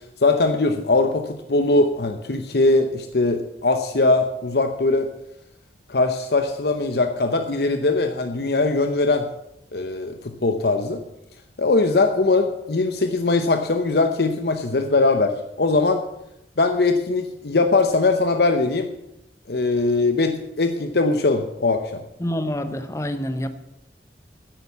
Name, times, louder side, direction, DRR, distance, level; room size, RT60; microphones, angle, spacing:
voice 1, 0.2-5.1 5.9-9.3 9.7-11.0 11.6-16.0 16.6-18.9 19.5-22.0, left 3 dB, 60° left, 7 dB, 0.8 m, -21 dB
voice 2, 22.2-23.5, left 1 dB, 15° left, 10 dB, 0.8 m, -27 dB
10.0 x 8.4 x 8.3 m, 0.85 s
head